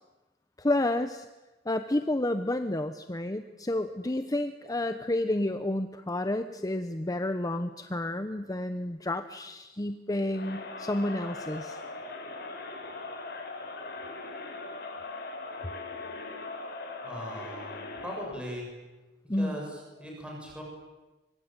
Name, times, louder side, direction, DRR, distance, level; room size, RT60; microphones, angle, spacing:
voice 1, 0.6-1.3 1.6-11.8 19.3-19.5, left 1 dB, 20° left, 9 dB, 1.0 m, -30 dB
Crowd, 10.3-18.4, left 3 dB, 60° left, 6.7 m, -40 dB
voice 2, 17.0-18.7 19.4-20.6, equal, 5° right, -1 dB, 7.3 m, -39 dB
25.0 x 24.5 x 9.1 m, 1.1 s
head